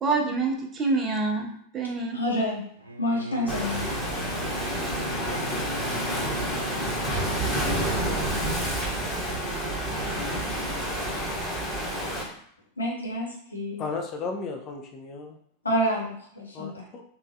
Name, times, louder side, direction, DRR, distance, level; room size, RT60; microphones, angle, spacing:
voice 1, 0.0-2.2, right 3 dB, 25° right, 1 dB, 0.5 m, -26 dB
voice 2, 2.1-2.6 3.0-3.9 12.8-13.8 15.6-16.8, equal, 80° left, -2 dB, 0.7 m, -28 dB
Bowed string instrument, 2.8-8.1, right 1 dB, 80° right, 0.3 m, -39 dB
Waves surf, 3.5-12.2, right 1 dB, ahead, 0.9 m, -29 dB
voice 3, 13.8-15.4 16.5-17.0, left 4 dB, 35° left, 3 dB, 0.4 m, -34 dB
3.1 x 2.2 x 2.6 m, 0.65 s
figure-of-eight pair, 90°, 0 cm